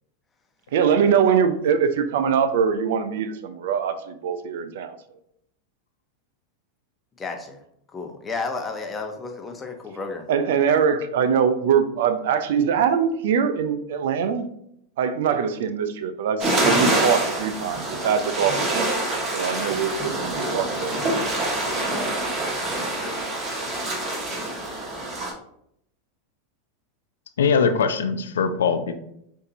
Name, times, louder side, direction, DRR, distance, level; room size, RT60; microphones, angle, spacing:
voice 1, 0.7-5.0 10.3-14.5 15.0-21.4 21.9-22.0, right 7 dB, 70° right, 10 dB, 0.5 m, -23 dB
voice 2, 7.2-7.6 7.9-10.3, left 4 dB, 20° left, 4 dB, 0.8 m, -32 dB
sound 1, 16.4-25.3, right 1 dB, 30° right, 1.7 m, -26 dB
voice 3, 27.4-28.9, left 5 dB, 85° left, 9 dB, 0.4 m, -21 dB
6.4 x 2.7 x 2.7 m, 0.74 s
hypercardioid pair, 105°, 0 cm